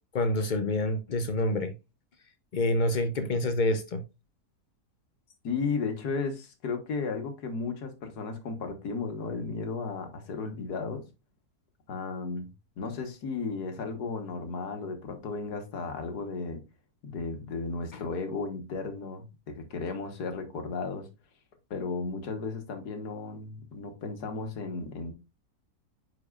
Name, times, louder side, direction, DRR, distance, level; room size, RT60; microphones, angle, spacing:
voice 1, 0.1-1.7 2.5-4.0, left 1 dB, 70° left, 0.4 m, -27 dB
voice 2, 5.4-11.0 11.9-12.5 12.8-16.6 17.0-21.1 21.7-25.1, left 4 dB, 85° left, 1.8 m, -34 dB
9.7 x 4.6 x 2.4 m
omnidirectional pair, 1.7 m